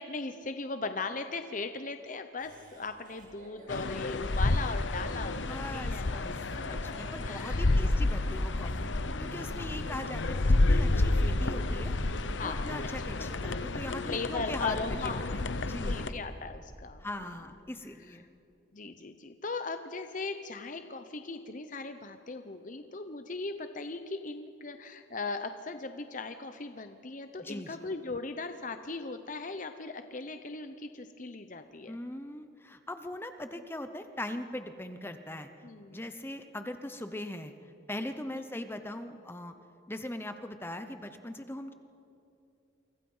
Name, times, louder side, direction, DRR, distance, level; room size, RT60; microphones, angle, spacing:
voice 1, 0.0-6.2 6.5-6.8 7.2-7.8 9.0-9.9 12.4-12.6 13.0-13.7 14.1-15.2 15.9-17.4 18.7-32.0 35.6-36.1 38.3-38.4, left 3 dB, 40° left, 8 dB, 0.8 m, -38 dB
Laughter, 2.4-8.8, equal, 45° right, 6.7 m, -54 dB
sound 1, 3.7-16.1, left 2 dB, 75° left, 0.9 m, -30 dB
voice 2, 5.5-11.9 12.4-16.0 17.0-18.2 27.4-27.9 31.9-35.5 35.9-37.5 37.9-39.5 39.9-41.7, left 1 dB, 10° left, 8 dB, 0.8 m, -40 dB
28.5 x 24.5 x 5.6 m, 2.7 s
head